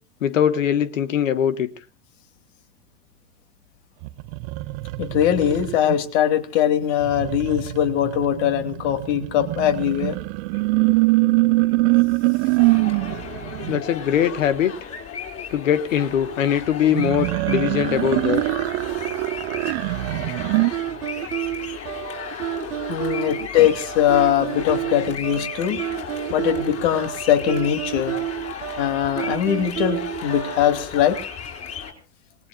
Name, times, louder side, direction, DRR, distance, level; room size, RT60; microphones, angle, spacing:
voice 1, 0.2-1.7 13.7-14.9 15.5-18.4, left 9 dB, 75° left, 12 dB, 1.4 m, -21 dB
sound 1, 4.0-5.9 7.0-13.8 16.9-20.7, right 24 dB, 50° right, 0.7 m, -23 dB
voice 2, 5.0-10.2 22.9-25.8 26.3-28.2 28.8-31.2, left 10 dB, 55° left, 8 dB, 2.8 m, -21 dB
sound 2, 12.6-31.9, left 7 dB, 40° left, 5.9 m, -35 dB
sound 3, 20.7-30.8, right 14 dB, 75° right, 1.2 m, -30 dB
28.0 x 20.0 x 2.4 m, 0.39 s
hypercardioid pair, 90°, 39 cm